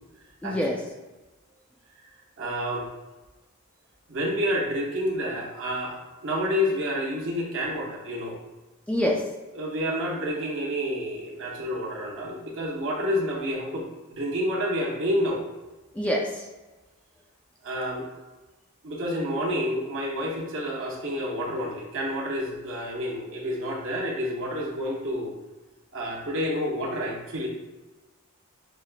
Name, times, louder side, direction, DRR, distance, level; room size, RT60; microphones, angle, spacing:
voice 1, 0.4-0.8 8.9-9.2 15.9-16.5, equal, 5° left, -1 dB, 0.3 m, -25 dB
voice 2, 2.4-2.9 4.1-8.4 9.5-15.4 17.6-18.1 18.8-25.3 25.9-27.5, equal, 60° right, -2 dB, 0.9 m, -29 dB
6.3 x 2.4 x 2.2 m, 1.1 s
head